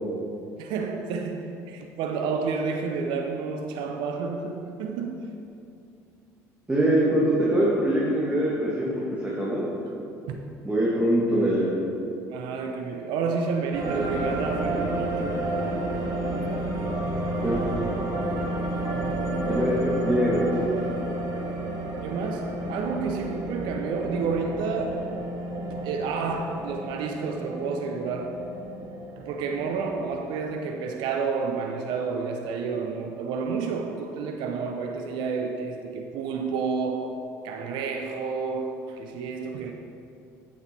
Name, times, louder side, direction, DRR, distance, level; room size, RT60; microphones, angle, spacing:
voice 1, 0.6-5.3 10.3-10.5 12.3-15.4 19.0-19.7 22.0-25.1 25.7-28.4 29.2-37.2 37.4-39.7, right 5 dB, 65° right, 4 dB, 0.6 m, -30 dB
voice 2, 6.7-9.7 10.6-11.8 17.4-17.6 19.5-20.7, right 1 dB, 15° right, -7 dB, 1.9 m, -23 dB
sound 1, 13.7-30.3, right 1 dB, 45° right, 1.6 m, -31 dB
8.2 x 7.2 x 4.5 m, 2.6 s
hypercardioid pair, 65°, 8 cm